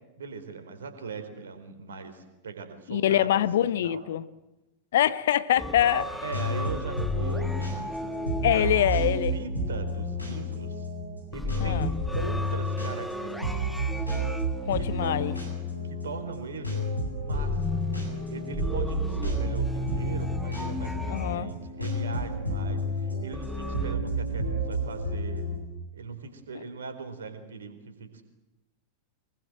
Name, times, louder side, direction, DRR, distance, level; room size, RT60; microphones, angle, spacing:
voice 1, 0.2-4.0 6.2-7.9 8.4-8.9 9.3-10.9 11.3-11.8 12.1-14.1 14.8-15.4 15.9-16.8 17.2-17.8 18.3-25.5 25.9-28.2, right 4 dB, 65° right, 4.2 m, -40 dB
voice 2, 2.9-4.3 4.9-6.1 8.4-9.3 11.6-11.9 14.6-15.3 21.1-21.5 26.5-26.6, left 11 dB, 60° left, 1.0 m, -24 dB
sound 1, 5.6-10.2 11.3-16.1 17.3-22.0 23.3-24.0, left 2 dB, ahead, 1.4 m, -35 dB
sound 2, 5.9-25.6, equal, 90° left, 7.8 m, -31 dB
25.0 x 22.5 x 7.9 m
figure-of-eight pair, 90°, 0 cm